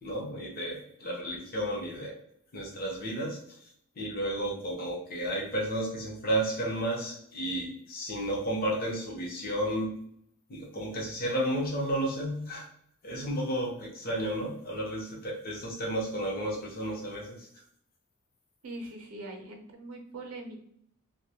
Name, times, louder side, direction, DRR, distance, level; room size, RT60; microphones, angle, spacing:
voice 1, 0.0-2.1 2.5-3.4 4.0-10.0 10.5-12.6 13.0-17.4, right 1 dB, 45° left, -2 dB, 0.7 m, -32 dB
voice 2, 18.6-20.6, right 2 dB, 80° right, 2 dB, 0.6 m, -42 dB
2.1 x 2.1 x 2.7 m, 0.69 s
head